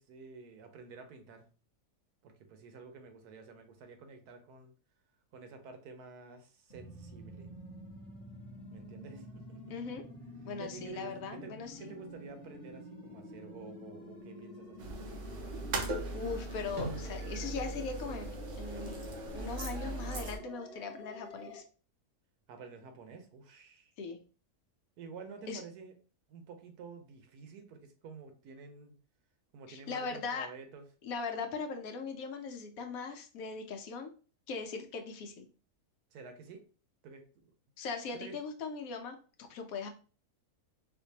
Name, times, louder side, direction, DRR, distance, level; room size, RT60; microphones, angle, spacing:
voice 1, 0.0-1.5 2.2-4.7 5.3-7.5 8.7-9.6 10.6-15.1 22.5-23.9 25.0-25.9 26.3-28.9 29.5-30.9 36.1-36.6 37.0-37.5 38.1-38.4, right 5 dB, 85° right, 7 dB, 1.2 m, -50 dB
sound 1, 6.7-21.6, left 1 dB, 30° left, 1.1 m, -49 dB
voice 2, 9.7-10.0 10.4-11.9 16.1-21.6 24.0-24.2 25.5-25.6 29.7-30.5 31.0-34.1 34.5-35.5 37.8-39.9, left 5 dB, 70° left, 5 dB, 1.0 m, -40 dB
sound 2, 14.8-20.4, right 2 dB, 60° right, 1.0 m, -39 dB
4.4 x 2.5 x 2.7 m, 0.38 s
omnidirectional pair, 1.6 m